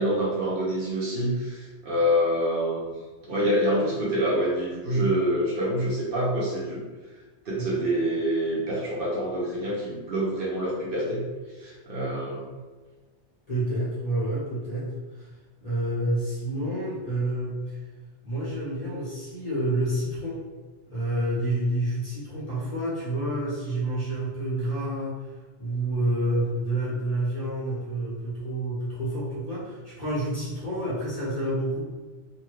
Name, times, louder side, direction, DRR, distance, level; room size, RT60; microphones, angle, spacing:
voice 1, 0.0-2.9 3.3-6.8 7.5-11.2 11.6-12.4, equal, 55° right, -6 dB, 0.8 m, -26 dB
voice 2, 13.5-15.3 15.6-17.8 18.2-20.4 20.9-25.2 25.6-31.8, right 1 dB, 40° left, -8 dB, 0.7 m, -29 dB
2.7 x 2.2 x 3.2 m, 1.3 s
omnidirectional pair, 1.2 m